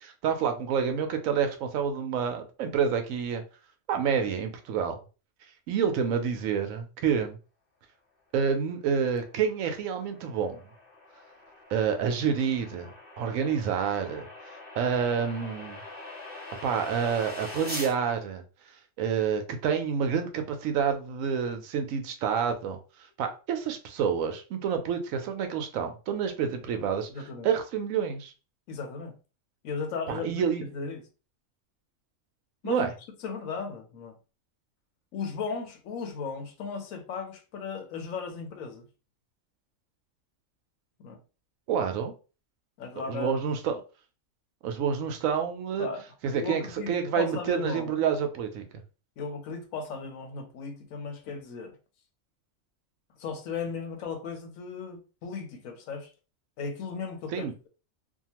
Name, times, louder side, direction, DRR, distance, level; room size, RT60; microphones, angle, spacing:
voice 1, 0.0-3.4 3.9-5.0 5.7-7.4 8.3-10.6 11.7-12.9 13.2-14.3 14.8-15.8 16.6-18.4 19.0-22.8 23.2-28.3 30.1-30.6 32.6-32.9 41.7-42.1 43.1-43.8 44.6-45.9 46.2-48.7 57.3-57.5, right 7 dB, 80° right, 1.0 m, -28 dB
sound 1, 9.3-17.9, left 2 dB, 10° right, 0.8 m, -43 dB
voice 2, 27.1-27.5 28.7-29.1 29.6-31.0 32.6-32.9 33.2-34.2 35.1-38.9 41.0-41.2 42.8-43.3 45.8-46.0 46.3-48.0 49.2-51.7 53.2-56.1 56.6-57.5, left 5 dB, 80° left, 1.1 m, -36 dB
2.7 x 2.2 x 2.8 m
omnidirectional pair, 1.4 m